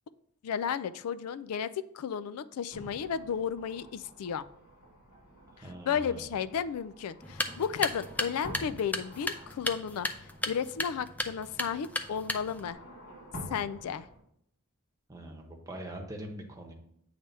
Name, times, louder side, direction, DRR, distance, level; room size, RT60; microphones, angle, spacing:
voice 1, 0.4-1.7 1.9-4.4 5.6-12.8 13.5-14.1, left 7 dB, 75° left, 14 dB, 0.4 m, -33 dB
sound 1, 2.7-14.2, equal, 60° left, 3.0 m, -49 dB
voice 2, 5.5-6.3 15.1-16.7, right 1 dB, 15° right, 1 dB, 1.1 m, -43 dB
sound 2, 7.2-12.7, left 1 dB, 5° left, 0.4 m, -36 dB
8.7 x 3.4 x 5.4 m, 0.74 s
head